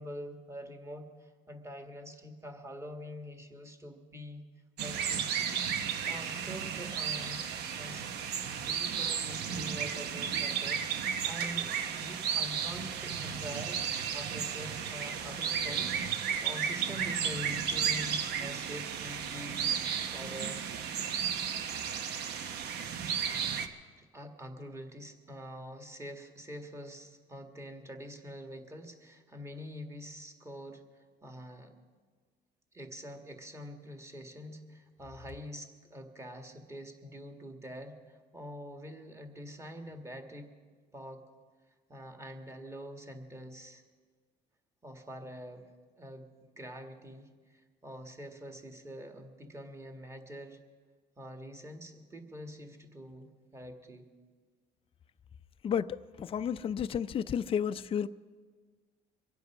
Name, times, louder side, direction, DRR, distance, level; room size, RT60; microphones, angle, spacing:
voice 1, 0.0-4.5 4.8-5.5 6.1-7.4 7.8-8.1 8.5-13.8 14.1-20.6 24.0-30.8 31.2-31.7 32.7-40.5 40.9-41.2 41.9-43.8 44.8-45.7 46.0-50.6 51.2-54.1, equal, 15° right, 4 dB, 1.7 m, -45 dB
sound 1, 4.8-23.7, right 7 dB, 75° right, 0.9 m, -34 dB
voice 2, 55.6-58.1, left 8 dB, 35° left, 11 dB, 0.4 m, -32 dB
24.0 x 8.2 x 6.0 m, 1.5 s
cardioid pair, 110°, 17 cm